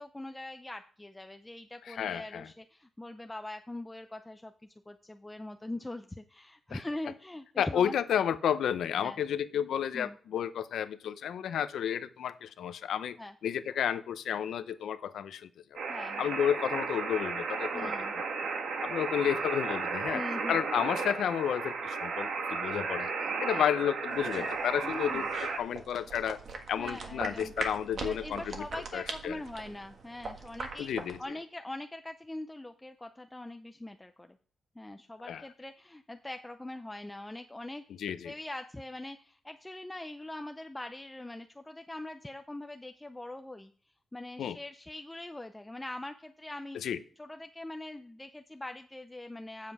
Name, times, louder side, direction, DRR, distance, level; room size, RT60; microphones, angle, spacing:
voice 1, 0.0-4.5 4.9-8.2 9.0-9.2 9.9-10.2 13.2-13.4 15.9-16.4 17.7-18.1 20.1-20.6 23.5-23.6 24.8-25.3 26.8-27.7 28.0-30.9 31.2-34.4 34.8-37.8 38.2-43.7 44.1-46.9 47.2-49.7, left 1 dB, 10° left, 6 dB, 0.5 m, -42 dB
voice 2, 1.9-2.5 6.7-6.8 7.6-13.2 13.4-15.8 16.2-18.4 18.8-20.2 20.5-23.1 23.4-26.4 26.7-28.6 28.9-29.4 30.8-31.2 35.3-35.4 38.0-38.3 44.4-44.6 46.7-47.0, left 9 dB, 75° left, 11 dB, 0.7 m, -31 dB
sound 1, 15.7-25.6, right 4 dB, 70° right, 1.6 m, -34 dB
sound 2, 24.1-31.2, right 4 dB, 50° right, 1.6 m, -42 dB
9.1 x 7.6 x 4.8 m, 0.43 s
wide cardioid pair, 155°, 0 cm